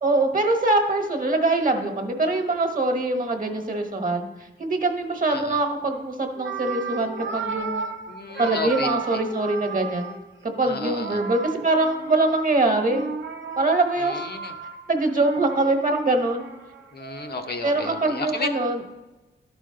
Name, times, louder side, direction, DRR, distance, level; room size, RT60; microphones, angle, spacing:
voice 1, 0.0-4.3 4.6-7.9 8.4-10.1 10.4-13.0 13.6-14.2 14.9-16.4 17.6-18.8, right 2 dB, 45° right, 4 dB, 1.2 m, -23 dB
sound 1, 5.9-6.0 6.3-10.4 10.8-12.5 12.9-18.3, right 4 dB, 80° right, 0.7 m, -34 dB
voice 2, 8.1-9.0 10.7-11.2 14.0-14.5 16.9-18.6, left 3 dB, 55° left, 5 dB, 0.7 m, -32 dB
11.5 x 5.1 x 3.8 m, 1.1 s
wide cardioid pair, 90°, 20 cm